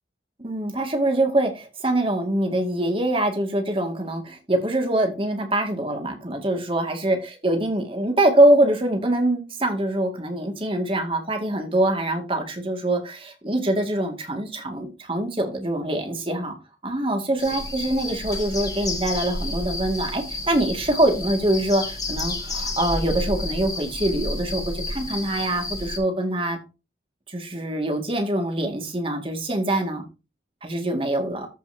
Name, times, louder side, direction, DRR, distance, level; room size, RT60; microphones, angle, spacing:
voice 1, 0.4-16.5 16.8-26.6 27.3-30.0 30.6-31.5, right 1 dB, 30° right, 2.2 m, -24 dB
sound 1, 17.4-26.0, left 2 dB, 20° left, 2.0 m, -31 dB
14.0 x 5.7 x 2.8 m
head